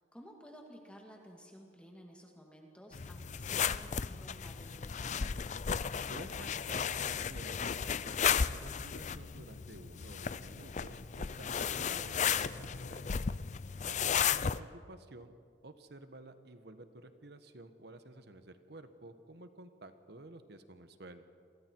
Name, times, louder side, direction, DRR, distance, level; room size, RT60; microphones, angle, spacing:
voice 1, 0.0-5.3 11.4-11.9 13.8-14.2, equal, 5° left, 0 dB, 2.3 m, -54 dB
sound 1, 2.9-14.6, left 7 dB, 40° left, 0.5 m, -34 dB
voice 2, 6.1-13.2 13.9-15.3 15.6-21.2, right 2 dB, 65° right, 9 dB, 1.3 m, -52 dB
29.0 x 23.0 x 4.7 m, 2.3 s
head